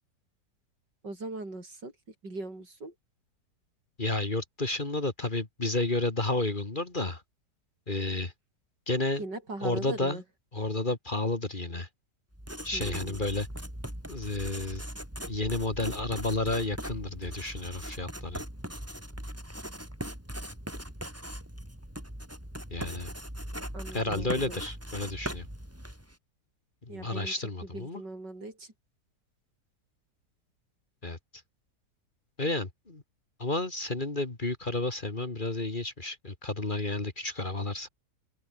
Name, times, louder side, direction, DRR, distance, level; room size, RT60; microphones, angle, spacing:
voice 1, 1.0-1.9 2.2-2.9 9.2-10.2 12.7-13.2 23.7-24.6 26.9-27.3 27.7-28.7, right 2 dB, 90° right, 7.2 m, -40 dB
voice 2, 4.0-7.2 7.9-8.3 8.9-9.2 9.6-10.2 10.5-11.9 12.6-13.5 14.1-14.8 15.3-18.4 22.7-23.1 23.9-25.5 26.9-28.0 31.0-31.2 32.4-33.0 33.4-37.9, left 2 dB, 30° left, 2.3 m, -31 dB
Writing, 12.3-26.1, equal, 10° right, 6.4 m, -40 dB
omnidirectional pair, 1.8 m